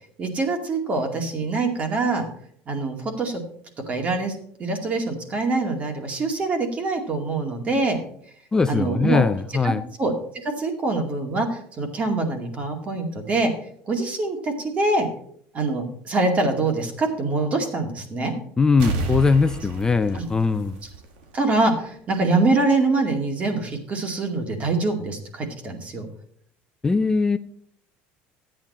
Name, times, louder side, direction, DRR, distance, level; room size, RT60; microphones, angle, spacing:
voice 1, 0.2-2.3 2.7-3.4 3.9-8.0 8.7-9.2 9.6-9.7 10.0-10.1 10.4-13.5 13.9-15.1 15.5-18.3 20.1-20.2 21.3-26.1, right 3 dB, 30° right, 4 dB, 2.3 m, -24 dB
voice 2, 8.5-9.8 18.6-20.8 26.8-27.4, left 4 dB, 15° left, 10 dB, 0.5 m, -20 dB
sound 1, 18.8-21.4 21.7-21.8, right 3 dB, 90° right, 1.8 m, -30 dB
13.0 x 8.9 x 4.3 m, 0.63 s
cardioid pair, 140°, 5 cm